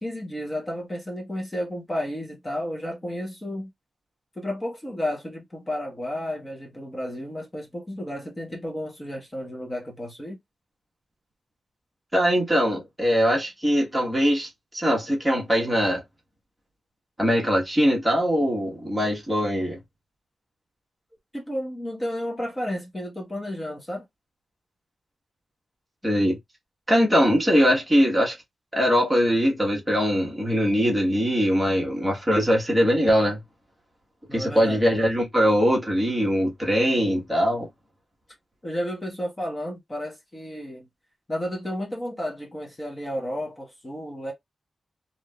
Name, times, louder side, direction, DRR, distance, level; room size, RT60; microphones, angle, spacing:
voice 1, 0.0-3.7 4.3-10.4 21.3-24.0 34.3-34.8 38.6-40.9 41.3-44.3, equal, 20° left, 1.1 m, -32 dB
voice 2, 12.1-16.0 17.2-19.8 26.0-26.4 26.9-28.3 28.7-33.4 34.3-37.7, equal, 5° right, 1.3 m, -22 dB
3.4 x 2.7 x 2.2 m
wide cardioid pair, 180°, 0 cm